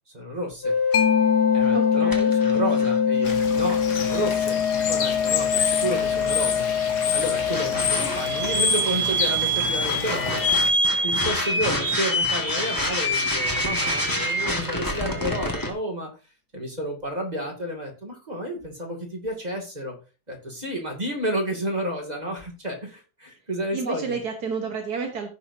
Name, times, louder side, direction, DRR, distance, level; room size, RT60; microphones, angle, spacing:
voice 1, 0.1-0.8 1.5-2.1 2.4-4.6 4.9-10.7 11.0-16.1 16.5-19.9 20.3-24.2, equal, 25° right, 1 dB, 2.5 m, -31 dB
sound 1, 0.6-15.7, left 3 dB, 15° left, 1.8 m, -24 dB
Mallet percussion, 0.9-8.2, left 8 dB, 65° left, 0.9 m, -27 dB
voice 2, 1.7-2.3 4.8-4.9 23.7-25.3, right 5 dB, 75° right, 3 dB, 1.8 m, -31 dB
Bird / Water, 3.2-10.7, left 6 dB, 90° left, 1.9 m, -29 dB
16.0 x 5.9 x 2.7 m, 0.33 s
omnidirectional pair, 1.7 m